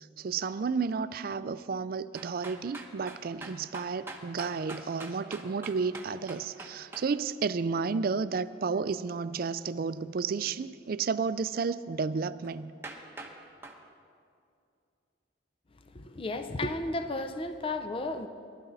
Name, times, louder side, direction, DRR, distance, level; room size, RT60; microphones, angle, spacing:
voice 1, 0.0-12.7, right 5 dB, 50° right, 15 dB, 0.4 m, -32 dB
sound 1, 2.1-7.1 12.4-12.5 12.8-13.3 13.6-13.8, right 2 dB, 15° right, 1.0 m, -43 dB
voice 2, 15.9-18.3, left 2 dB, 30° left, 8 dB, 0.5 m, -33 dB
19.0 x 12.0 x 4.1 m, 2.5 s
head